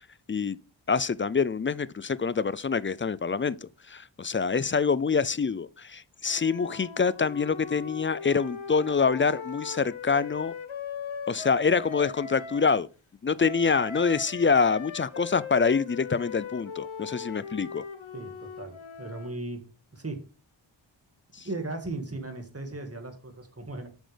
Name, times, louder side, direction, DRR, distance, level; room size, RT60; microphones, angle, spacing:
voice 1, 0.9-10.5 11.3-12.9 13.2-17.8 21.4-21.5, left 5 dB, 25° left, 0.4 m, -26 dB
Wind instrument woodwind instrument, 6.3-12.7 13.4-19.4, left 6 dB, 75° left, 1.1 m, -39 dB
voice 2, 18.1-19.6 19.9-20.2 21.4-23.9, right 2 dB, 30° right, 1.9 m, -37 dB
8.0 x 6.2 x 3.3 m
wide cardioid pair, 50°, 47 cm